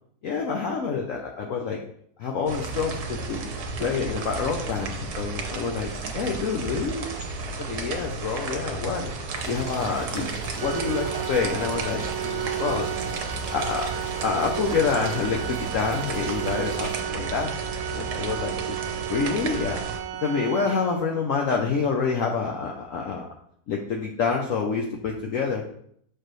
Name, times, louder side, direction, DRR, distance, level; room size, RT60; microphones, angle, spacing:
voice 1, 0.2-1.8 2.2-3.5 3.8-7.0 7.6-9.1 9.5-12.9 13.5-13.9 14.2-17.6 17.9-18.8 19.1-19.8 20.2-23.2 23.7-25.6, left 5 dB, 75° left, 0 dB, 0.7 m, -27 dB
sound 1, 2.5-20.0, right 4 dB, 60° right, 1.2 m, -33 dB
sound 2, 9.3-17.0, equal, 10° left, 1.4 m, -42 dB
Organ, 10.6-21.3, right 12 dB, 80° right, 1.4 m, -33 dB
6.6 x 4.7 x 3.0 m, 0.68 s
omnidirectional pair, 2.1 m